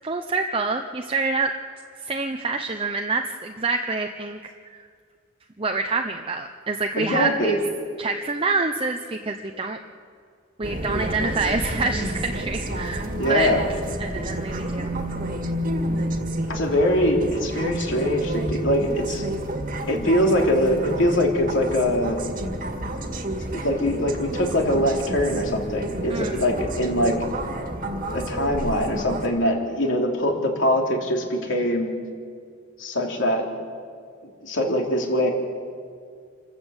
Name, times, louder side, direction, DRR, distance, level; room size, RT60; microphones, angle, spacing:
voice 1, 0.0-1.5 2.0-4.5 5.6-7.6 8.0-9.8 10.6-13.0 13.3-13.5 14.0-15.0 26.1-26.4, right 3 dB, 25° right, 4 dB, 0.7 m, -26 dB
voice 2, 7.0-7.6 13.2-13.6 16.4-19.2 19.9-22.2 23.5-27.2 28.1-31.9 32.8-33.5 34.4-35.3, left 1 dB, 65° left, 1 dB, 3.2 m, -23 dB
sound 1, 10.6-29.3, right 1 dB, 45° right, 1.9 m, -30 dB
27.0 x 13.5 x 8.1 m, 2.2 s
head